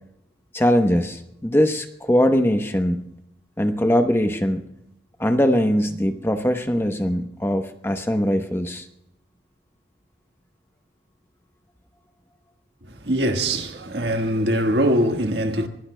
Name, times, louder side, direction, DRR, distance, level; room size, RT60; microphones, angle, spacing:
voice 1, 0.5-3.0 3.6-4.6 5.2-8.9, equal, 10° left, 0.8 m, -21 dB
voice 2, 13.0-15.7, right 1 dB, 60° right, 1.5 m, -22 dB
24.5 x 21.0 x 2.2 m
head